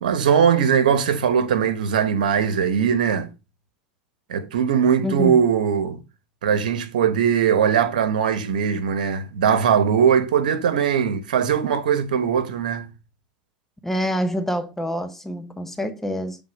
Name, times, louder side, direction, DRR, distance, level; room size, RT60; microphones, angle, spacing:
voice 1, 0.0-3.3 4.3-6.0 6.4-12.9, right 7 dB, 85° right, 1.1 m, -20 dB
voice 2, 5.0-5.5 13.8-16.4, equal, 5° left, 0.8 m, -26 dB
7.5 x 3.7 x 5.0 m
hypercardioid pair, 105°, 4 cm